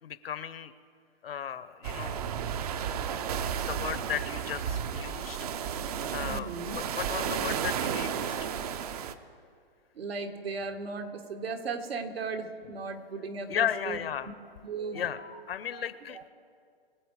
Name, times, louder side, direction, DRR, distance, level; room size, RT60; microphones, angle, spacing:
voice 1, 0.0-0.7 1.2-2.3 3.0-3.1 3.5-5.5 6.1-8.5 13.5-14.3 14.9-15.2 15.5-16.2, left 9 dB, 65° left, 14 dB, 0.9 m, -35 dB
sound 1, 1.8-9.1, right 8 dB, 40° right, 0.7 m, -33 dB
voice 2, 6.2-6.8 9.9-14.0 14.3-14.4 14.6-15.4 15.7-15.8 16.1-16.2, right 4 dB, 70° right, 5 dB, 1.9 m, -37 dB
23.5 x 7.8 x 4.8 m, 2.2 s
hypercardioid pair, 150°, 31 cm